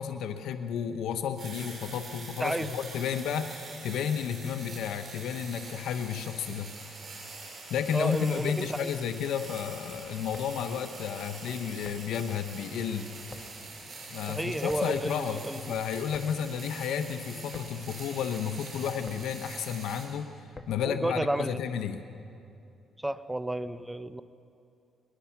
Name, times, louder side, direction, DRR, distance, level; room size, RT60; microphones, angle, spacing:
voice 1, 0.0-6.7 7.7-13.1 14.1-20.3 20.7-22.1, left 8 dB, 80° left, 8 dB, 1.0 m, -32 dB
sound 1, 1.4-20.1, right 3 dB, 50° right, 6.0 m, -45 dB
voice 2, 7.9-8.9 14.3-15.8 20.8-21.6 23.0-24.2, right 1 dB, 10° right, 13 dB, 0.8 m, -32 dB
sound 2, 10.3-21.0, left 2 dB, 20° left, 1.5 m, -52 dB
21.5 x 21.5 x 5.9 m, 2.6 s
cardioid pair, 90°, 0 cm